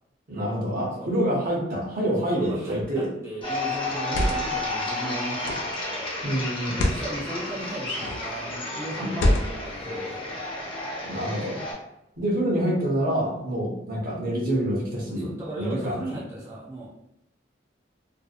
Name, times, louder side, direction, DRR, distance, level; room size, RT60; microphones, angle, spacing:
voice 1, 0.3-3.1 6.2-6.8 9.0-9.2 11.0-11.6 12.2-15.3 15.6-16.0, right 1 dB, 50° right, -2 dB, 0.7 m, -26 dB
voice 2, 2.2-5.7 6.7-10.4 15.1-16.9, right 1 dB, 15° right, -7 dB, 0.5 m, -36 dB
sound 1, 2.7-3.1 3.9-4.6 5.4-5.8 6.6-7.1 8.0-8.3 9.1-9.7, left 1 dB, 85° left, 0.3 m, -26 dB
sound 2, 3.4-11.7, left 2 dB, 30° left, 0.7 m, -32 dB
2.5 x 2.0 x 2.4 m, 0.83 s
head